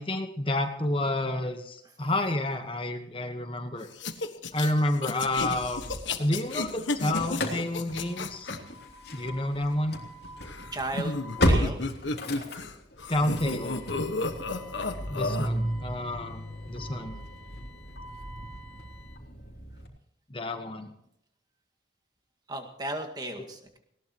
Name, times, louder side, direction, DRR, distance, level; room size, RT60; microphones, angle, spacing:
voice 1, 0.0-3.9 4.5-8.5 9.1-10.0 13.1-13.8 15.1-17.2 20.3-20.9, left 1 dB, 30° left, 6 dB, 1.2 m, -30 dB
sound 1, 4.0-8.6 10.4-12.7 13.0-15.5, left 3 dB, 80° left, 1.5 m, -32 dB
Engine starting / Slam, 5.1-6.5 6.8-19.9, equal, 55° left, 3.1 m, -34 dB
voice 2, 10.7-11.2 11.5-11.8 22.5-23.8, right 1 dB, 20° right, 4 dB, 2.0 m, -35 dB
20.0 x 18.5 x 3.0 m, 0.74 s
head